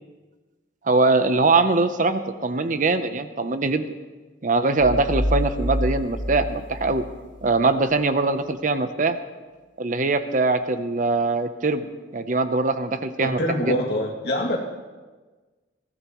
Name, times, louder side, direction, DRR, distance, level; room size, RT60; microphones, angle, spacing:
voice 1, 0.8-3.9 4.4-7.0 7.4-9.2 9.8-11.9 12.1-13.8, right 3 dB, 45° right, 10 dB, 0.7 m, -22 dB
sound 1, 4.8-7.6, equal, 80° right, 1.6 m, -27 dB
voice 2, 13.2-14.6, equal, 65° left, -1 dB, 2.5 m, -25 dB
21.5 x 16.0 x 3.1 m, 1.3 s
head